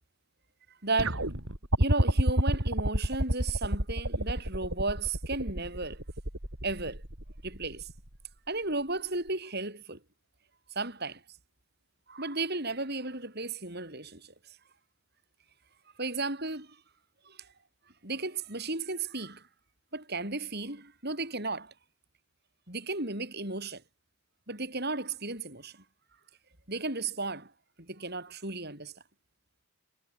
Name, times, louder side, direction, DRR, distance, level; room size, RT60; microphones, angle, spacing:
voice 1, 0.7-1.3 1.8-6.0 6.6-7.0 7.4-7.9 8.5-10.0 10.7-11.2 12.1-14.6 16.0-16.8 17.2-17.5 18.0-19.5 19.9-21.7 22.7-23.8 24.5-25.8 26.7-27.5 27.8-29.0, right 3 dB, 45° right, 7.3 m, -34 dB
sound 1, 1.0-8.1 9.3-9.4, right 1 dB, 65° right, 4.5 m, -29 dB
head